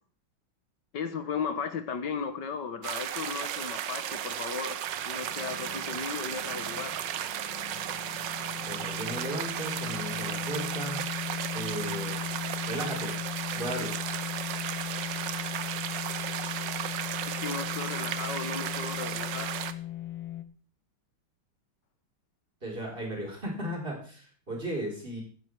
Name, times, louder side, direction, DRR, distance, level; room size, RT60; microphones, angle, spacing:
voice 1, 0.9-4.8 5.0-6.9 17.3-19.5, left 6 dB, 60° left, 10 dB, 1.9 m, -35 dB
sound 1, 2.8-19.7, right 11 dB, 70° right, 1.4 m, -35 dB
sound 2, 4.9-20.4, left 12 dB, 90° left, 1.9 m, -39 dB
voice 2, 8.7-11.1 11.5-12.2 12.7-13.2 13.5-14.0 22.6-25.2, right 1 dB, 25° right, 0 dB, 4.4 m, -36 dB
15.5 x 9.4 x 4.7 m, 0.42 s
omnidirectional pair, 2.3 m